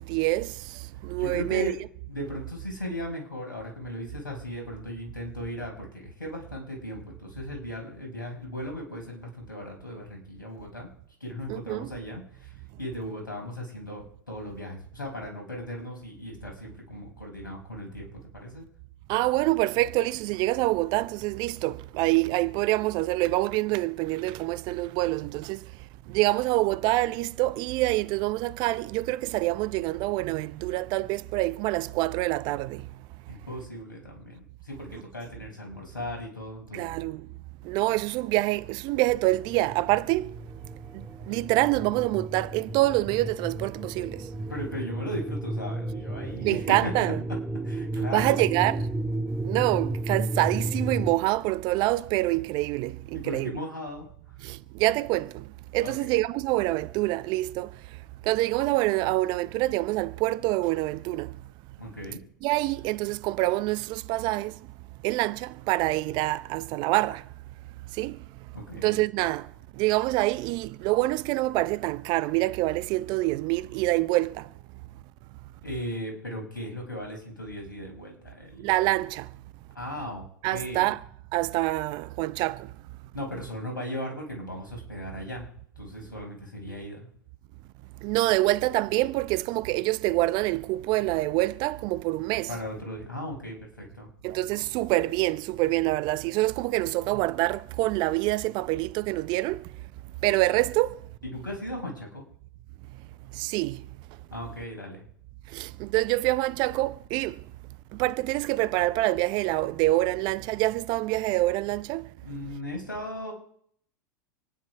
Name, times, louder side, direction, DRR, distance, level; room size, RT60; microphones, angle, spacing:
voice 1, 0.1-0.5 1.0-1.7 11.5-11.9 19.1-25.6 26.1-32.8 36.7-37.3 37.6-40.3 40.9-44.2 46.4-47.2 48.1-48.8 49.4-53.5 54.4-55.4 55.7-57.7 58.3-61.3 62.4-64.5 65.0-67.2 68.0-68.2 68.8-69.5 69.8-74.5 78.6-79.3 80.4-81.0 81.3-82.7 88.0-92.5 94.2-99.6 100.2-101.0 103.4-103.8 105.5-107.4 108.0-112.1, right 18 dB, 45° right, 0.7 m, -26 dB
voice 2, 1.2-10.9 11.2-18.6 33.3-37.1 44.5-47.4 47.6-48.5 53.1-54.1 55.8-56.2 61.8-62.2 68.5-69.0 75.6-78.7 79.7-80.9 83.1-85.5 85.8-87.1 92.5-94.1 101.2-102.2 104.3-105.0 112.2-113.3, left 1 dB, 90° left, 5.6 m, -37 dB
sound 1, 39.5-51.1, right 1 dB, 10° right, 1.1 m, -33 dB
27.0 x 10.5 x 4.9 m
figure-of-eight pair, 95°, 11 cm